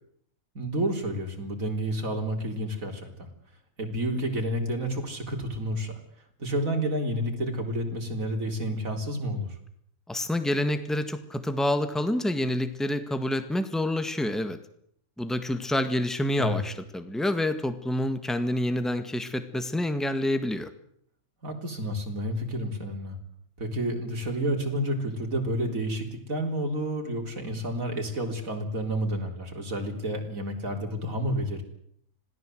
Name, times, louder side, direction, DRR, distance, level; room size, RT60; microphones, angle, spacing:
voice 1, 0.5-3.3 3.8-6.0 6.4-9.5 16.4-16.6 21.4-23.2 23.6-31.6, right 1 dB, 70° right, 3 dB, 4.2 m, -30 dB
voice 2, 10.1-14.6 15.2-20.7, left 1 dB, ahead, 10 dB, 1.6 m, -28 dB
26.0 x 18.0 x 7.9 m, 0.68 s
omnidirectional pair, 1.5 m